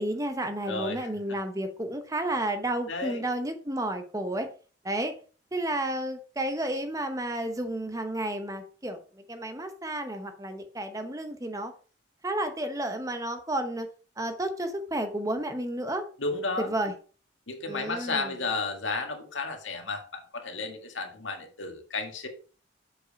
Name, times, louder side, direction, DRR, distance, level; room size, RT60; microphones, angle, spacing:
voice 1, 0.0-4.5 4.8-5.1 5.5-11.7 12.2-13.9 14.2-16.0 16.6-16.9 17.7-18.3, right 1 dB, 15° right, 7 dB, 0.9 m, -31 dB
voice 2, 0.6-1.1 2.9-3.2 16.2-16.8 17.5-22.3, left 3 dB, 85° left, 5 dB, 1.8 m, -33 dB
7.6 x 5.3 x 5.2 m, 0.39 s
head